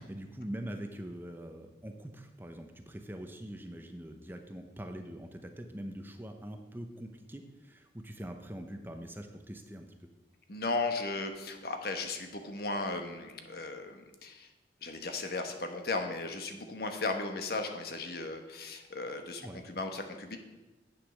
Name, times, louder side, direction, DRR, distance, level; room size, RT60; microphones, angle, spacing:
voice 1, 0.1-10.1 19.4-19.6, right 1 dB, 10° right, 5 dB, 0.7 m, -43 dB
voice 2, 10.5-14.5 14.8-20.4, left 3 dB, 60° left, 6 dB, 1.2 m, -36 dB
8.8 x 7.5 x 6.4 m, 1.1 s
head